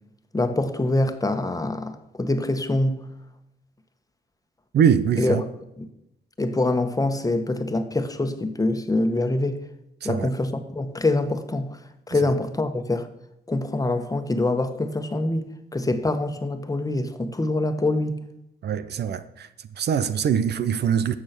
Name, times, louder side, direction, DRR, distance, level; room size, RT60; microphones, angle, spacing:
voice 1, 0.3-3.0 5.2-5.4 5.8-5.9 6.4-9.6 10.0-11.8 12.1-13.1 13.5-18.3, left 2 dB, 20° left, 1.3 m, -25 dB
voice 2, 4.7-5.4 10.0-10.3 12.2-12.3 18.6-19.5 19.8-21.1, right 8 dB, 70° right, 0.7 m, -23 dB
12.0 x 7.3 x 6.0 m
cardioid pair, 70°, 18 cm